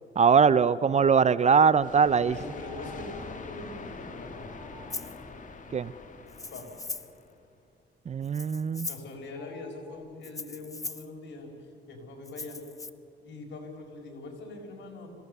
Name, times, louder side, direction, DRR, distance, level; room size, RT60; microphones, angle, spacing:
voice 1, 0.2-2.3 5.7-5.9 8.1-8.9, right 6 dB, 35° right, 17 dB, 0.5 m, -21 dB
sound 1, 1.8-7.3, left 4 dB, 40° left, 2.1 m, -44 dB
voice 2, 2.2-4.5 6.5-6.8 8.9-12.6 13.2-15.1, left 2 dB, 65° left, 1 dB, 5.4 m, -43 dB
sound 2, 2.3-3.3 4.4-5.0 8.7-8.8 9.3-9.9, right 1 dB, 15° right, 4.3 m, -50 dB
Rattle (instrument), 4.9-5.2 6.3-7.2 8.2-9.1 10.2-11.1 12.2-12.9, left 3 dB, 15° left, 0.7 m, -39 dB
26.5 x 17.0 x 6.7 m, 2.3 s
cardioid pair, 90°, 20 cm